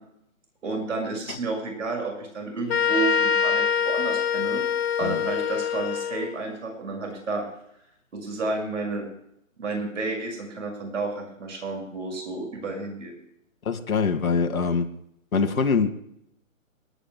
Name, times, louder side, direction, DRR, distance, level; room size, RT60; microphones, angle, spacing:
voice 1, 0.6-4.6 5.0-7.5 8.1-9.1 9.6-13.1, right 3 dB, 65° right, 2 dB, 6.0 m, -31 dB
sound 1, 2.7-6.4, left 6 dB, 50° left, 1.1 m, -24 dB
voice 2, 13.7-14.9 15.3-15.9, left 5 dB, 90° left, 5 dB, 2.0 m, -23 dB
29.5 x 10.0 x 2.2 m, 0.74 s
hypercardioid pair, 170°, 41 cm